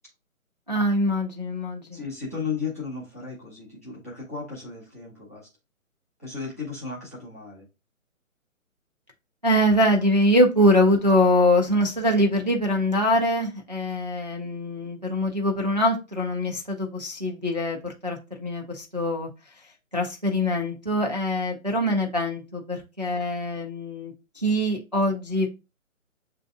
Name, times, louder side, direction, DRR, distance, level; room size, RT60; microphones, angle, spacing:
voice 1, 0.7-2.0 9.4-19.3 19.9-25.5, left 1 dB, 35° right, 1 dB, 0.4 m, -23 dB
voice 2, 1.9-5.5 6.2-7.7, left 5 dB, 10° left, -7 dB, 0.6 m, -35 dB
7.4 x 2.6 x 2.3 m, 0.27 s
figure-of-eight pair, 140°, 42 cm